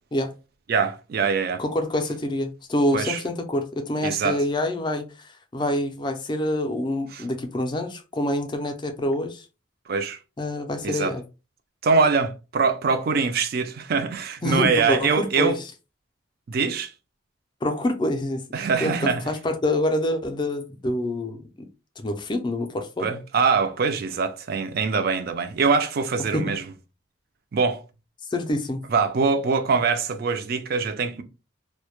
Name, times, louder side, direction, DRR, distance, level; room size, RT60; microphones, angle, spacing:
voice 1, 0.7-1.6 2.9-3.2 4.0-4.4 7.1-7.2 9.9-10.2 10.8-11.2 11.8-15.6 16.5-16.9 18.5-19.2 23.0-26.6 27.5-27.8 28.9-31.2, right 5 dB, 50° right, 0.3 m, -23 dB
voice 2, 1.6-9.5 10.4-11.2 14.4-15.6 17.6-18.4 18.8-21.5 22.0-23.1 26.3-26.5 28.3-28.8, left 1 dB, 20° left, 0.4 m, -26 dB
2.1 x 2.0 x 2.8 m
head